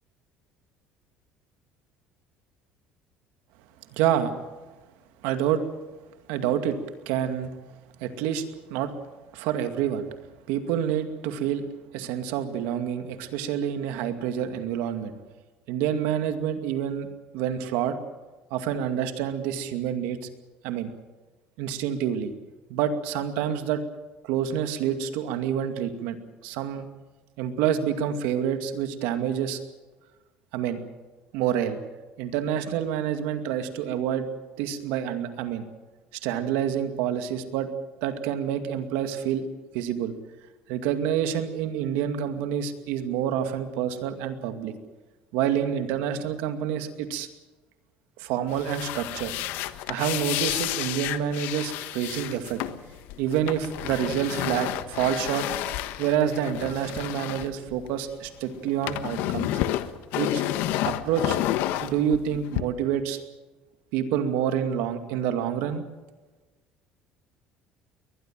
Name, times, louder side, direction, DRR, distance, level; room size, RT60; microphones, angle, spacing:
voice 1, 3.9-4.3 5.2-5.6 6.3-6.8 7.1-7.5 8.0-8.4 8.7-8.9 9.3-10.1 10.5-11.6 11.9-15.1 15.7-17.1 17.3-18.0 18.5-20.2 20.6-20.9 21.6-22.3 22.7-23.8 24.2-26.2 26.4-26.9 27.4-29.6 30.5-30.8 31.3-31.8 32.2-34.3 34.6-35.7 36.2-37.7 38.0-39.5 39.7-40.1 40.7-44.7 45.3-47.3 48.2-49.3 49.9-52.6 53.2-55.5 56.0-59.5 60.1-60.4 60.8-61.4 61.8-63.2 63.9-65.8, right 9 dB, 85° right, 8 dB, 2.4 m, -27 dB
sound 1, 48.5-58.3 58.5-62.6, left 14 dB, 75° left, 1.3 m, -30 dB
22.0 x 20.0 x 7.7 m, 1.2 s
cardioid pair, 145°, 3 cm